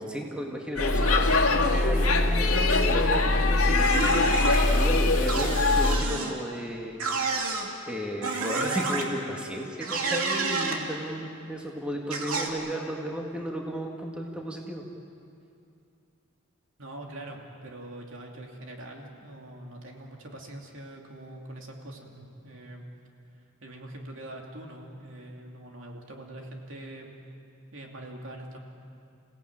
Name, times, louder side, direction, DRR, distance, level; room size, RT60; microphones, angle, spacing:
voice 1, 0.0-7.0 7.3-7.4 7.9-14.8, equal, 5° right, 0 dB, 1.8 m, -34 dB
Speech / Shout / Subway metro underground, 0.8-6.0, left 2 dB, 90° left, 1.8 m, -22 dB
sound 1, 3.8-4.6 5.3-6.3 7.0-7.7 8.2-9.0 9.8-10.8 12.1-12.5, right 4 dB, 85° right, 2.8 m, -29 dB
voice 2, 16.8-22.9 23.6-27.2 27.7-28.6, right 1 dB, 60° right, 0 dB, 2.9 m, -43 dB
28.5 x 17.0 x 8.9 m, 2.5 s
head